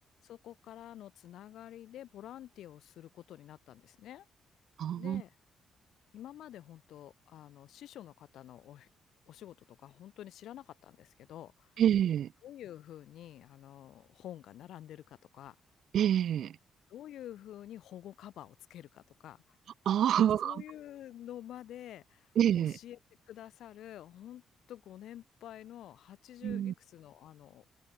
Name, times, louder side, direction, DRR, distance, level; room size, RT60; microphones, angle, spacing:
voice 1, 0.2-4.3 5.0-5.3 6.1-8.9 9.3-11.7 12.4-15.6 16.9-19.6 20.1-23.0 23.3-24.4 24.7-27.7, left 12 dB, 75° left, 3.7 m, -49 dB
voice 2, 4.8-5.2 11.8-12.3 15.9-16.5 19.9-20.6 22.4-22.8 26.4-26.7, right 10 dB, 70° right, 0.5 m, -27 dB
open air
supercardioid pair, 55°, 0 cm